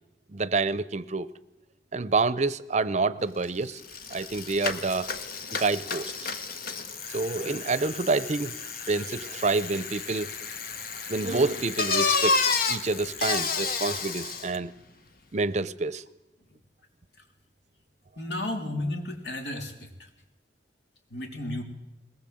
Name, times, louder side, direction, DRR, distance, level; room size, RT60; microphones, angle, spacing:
voice 1, 0.3-1.3 1.9-3.8 4.1-5.1 5.5-6.3 7.1-8.5 8.9-10.3 11.1-14.7 15.3-16.0, right 3 dB, 40° right, 17 dB, 0.7 m, -28 dB
Bicycle, 3.4-3.5 3.8-14.6, left 4 dB, 60° left, 1.5 m, -31 dB
voice 2, 18.2-20.1 21.1-21.6, left 1 dB, 75° left, 4 dB, 3.4 m, -33 dB
21.0 x 19.0 x 7.8 m, 0.92 s
head